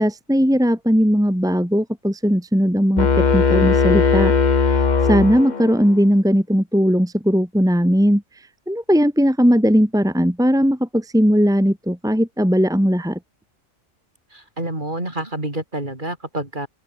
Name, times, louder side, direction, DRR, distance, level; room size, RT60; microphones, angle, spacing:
voice 1, 0.0-4.3 5.1-8.2 8.7-13.2, equal, 5° right, 2.3 m, -18 dB
sound 1, 3.0-5.9, left 5 dB, 35° left, 1.2 m, -18 dB
voice 2, 14.3-16.7, right 1 dB, 35° right, 5.0 m, -28 dB
open air
omnidirectional pair, 1.4 m